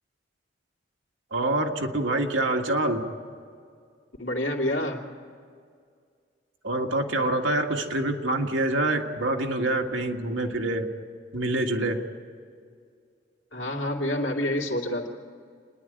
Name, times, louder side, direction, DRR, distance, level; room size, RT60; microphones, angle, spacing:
voice 1, 1.3-3.1 6.6-10.9 11.3-12.0, right 2 dB, 85° right, 2 dB, 1.8 m, -26 dB
voice 2, 4.2-5.0 13.5-15.1, left 1 dB, 85° left, 0 dB, 2.7 m, -28 dB
28.5 x 10.5 x 8.9 m, 2.2 s
head